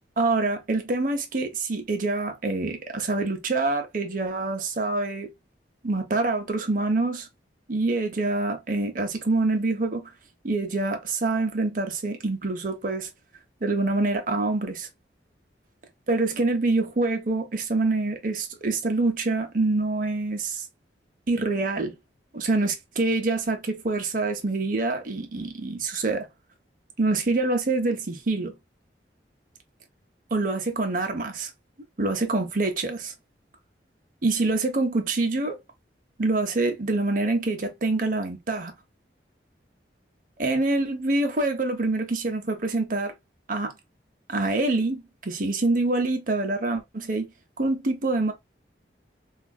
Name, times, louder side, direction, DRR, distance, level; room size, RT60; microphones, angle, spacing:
voice 1, 0.2-5.3 5.8-7.3 7.7-10.1 10.4-13.1 13.6-14.9 16.1-20.7 21.3-22.0 22.3-26.3 27.0-28.5 30.3-31.5 32.0-33.1 34.2-35.6 36.2-38.7 40.4-43.1 43.5-43.7 44.3-47.3 47.6-48.3, right 2 dB, 50° right, 0.6 m, -26 dB
3.7 x 2.3 x 2.3 m
head